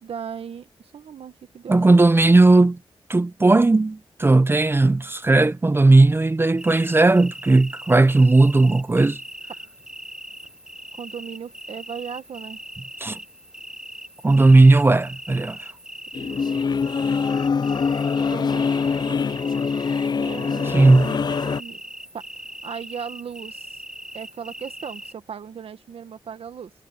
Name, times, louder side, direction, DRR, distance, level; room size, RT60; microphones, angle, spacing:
voice 1, 0.0-1.8 10.9-12.6 16.2-16.6 18.3-19.4 20.2-21.8 22.1-22.2 22.6-23.8 24.1-26.7, right 7 dB, 80° right, 1.5 m, -37 dB
voice 2, 1.7-2.8 3.1-9.2 13.0-13.2 14.2-15.7 20.7-21.1, right 2 dB, 25° right, 0.6 m, -16 dB
sound 1, 6.6-25.1, right 1 dB, 5° right, 2.7 m, -40 dB
sound 2, 16.1-21.6, left 5 dB, 45° left, 0.4 m, -24 dB
wide cardioid pair, 85°, 10 cm